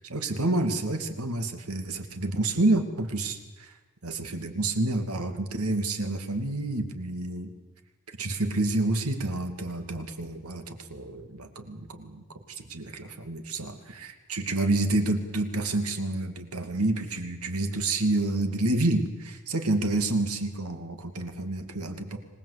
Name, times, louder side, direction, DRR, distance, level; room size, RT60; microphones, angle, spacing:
voice 1, 0.0-3.7 4.0-7.5 8.1-22.2, right 2 dB, 85° right, 7 dB, 2.6 m, -29 dB
25.5 x 20.0 x 8.4 m, 1.1 s
head